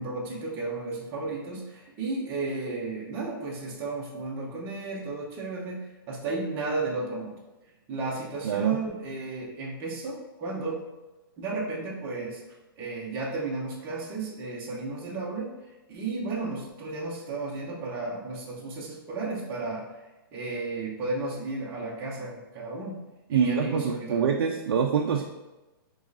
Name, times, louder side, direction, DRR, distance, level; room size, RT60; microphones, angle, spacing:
voice 1, 0.0-7.4 7.9-10.8 11.4-12.4 12.8-20.0 20.3-23.0 23.3-24.3, right 3 dB, 15° right, -4 dB, 0.7 m, -33 dB
voice 2, 8.4-8.8 23.3-25.2, right 6 dB, 70° right, 2 dB, 0.4 m, -25 dB
3.6 x 3.1 x 4.0 m, 1.1 s
hypercardioid pair, 170°, 12 cm